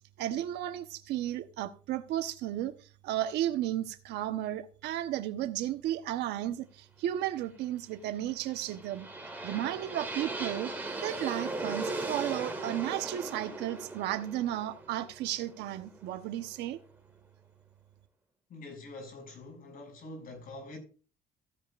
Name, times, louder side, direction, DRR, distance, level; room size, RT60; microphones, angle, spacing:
voice 1, 0.2-2.8 3.0-9.1 9.4-10.7 11.0-16.8, right 12 dB, 85° right, 1.1 m, -34 dB
sound 1, 8.3-16.3, right 2 dB, 10° right, 4.1 m, -38 dB
voice 2, 18.5-20.8, left 2 dB, 55° left, 6.4 m, -45 dB
15.5 x 10.0 x 2.5 m
cardioid pair, 110°, 17 cm